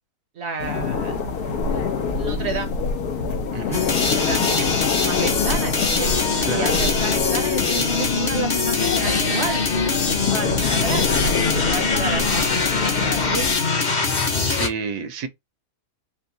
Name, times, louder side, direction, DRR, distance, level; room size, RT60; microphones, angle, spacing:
voice 1, 0.3-1.2 2.2-2.8 4.0-6.1 6.4-11.1 11.6-13.6, right 4 dB, 55° right, 0.8 m, -31 dB
sound 1, 0.6-13.5, left 5 dB, 80° left, 1.5 m, -26 dB
voice 2, 3.5-3.8 6.4-6.7 14.4-15.3, right 5 dB, 80° right, 1.3 m, -29 dB
sound 2, 3.7-14.7, left 4 dB, 40° left, 0.7 m, -22 dB
4.4 x 2.1 x 3.9 m
omnidirectional pair, 1.7 m